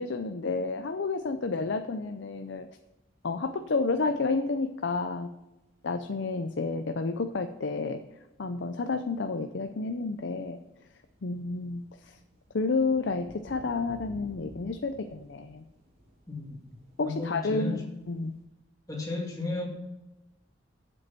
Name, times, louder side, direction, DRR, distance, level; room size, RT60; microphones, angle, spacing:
voice 1, 0.0-2.7 3.2-5.3 5.8-8.0 8.4-10.6 11.2-12.2 12.5-15.6 17.0-17.8 18.1-18.3, left 3 dB, 70° left, 7 dB, 0.6 m, -30 dB
sound 1, 1.4-1.5 1.7-2.2 2.6-4.7 5.3-5.4 5.6-5.7 5.9-6.1 6.7-7.4 7.7-18.4, left 1 dB, 50° right, 2.7 m, -54 dB
voice 2, 16.3-16.6 17.0-17.9 18.9-19.7, left 3 dB, 20° left, -1 dB, 2.0 m, -34 dB
7.7 x 7.6 x 6.0 m, 0.99 s
head